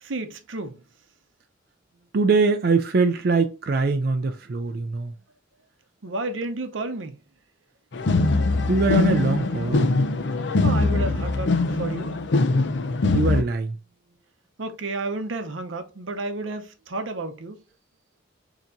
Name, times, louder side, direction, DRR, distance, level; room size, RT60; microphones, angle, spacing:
voice 1, 0.0-0.8 6.0-7.2 10.6-12.2 14.6-17.6, right 2 dB, 80° right, 0.8 m, -31 dB
voice 2, 2.1-5.1 8.7-9.9 13.1-13.8, right 3 dB, 50° right, 0.4 m, -22 dB
sound 1, 7.9-13.4, left 3 dB, 60° left, 0.5 m, -22 dB
6.8 x 2.9 x 2.6 m
head